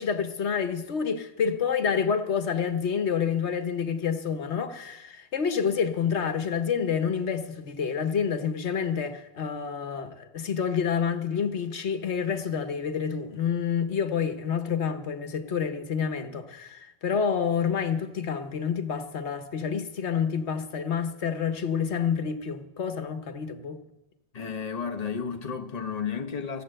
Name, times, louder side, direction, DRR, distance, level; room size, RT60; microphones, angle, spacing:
voice 1, 0.0-23.8, left 7 dB, 90° left, 1.4 m, -28 dB
voice 2, 24.3-26.6, left 6 dB, 40° left, 1.1 m, -32 dB
15.0 x 9.1 x 7.7 m
omnidirectional pair, 1.1 m